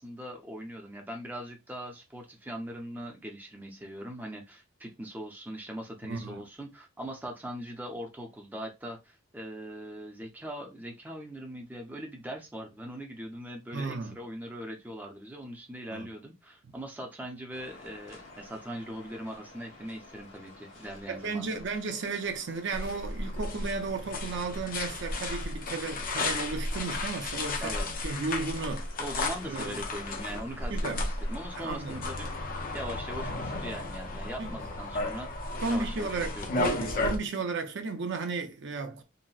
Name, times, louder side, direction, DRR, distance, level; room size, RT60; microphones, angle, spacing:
voice 1, 0.0-21.6 27.6-27.9 29.0-32.4 32.7-35.3 35.7-36.9, equal, 10° right, 0.5 m, -41 dB
voice 2, 6.1-6.5 13.7-14.2 15.9-16.1 21.1-28.9 29.5-29.8 30.7-31.0 31.6-32.0 34.4-34.6 35.6-39.0, right 4 dB, 60° right, 0.5 m, -34 dB
sound 1, 17.5-32.4, left 2 dB, 65° left, 1.1 m, -51 dB
sound 2, 22.7-37.2, left 2 dB, 45° left, 0.5 m, -34 dB
3.9 x 2.0 x 2.3 m
head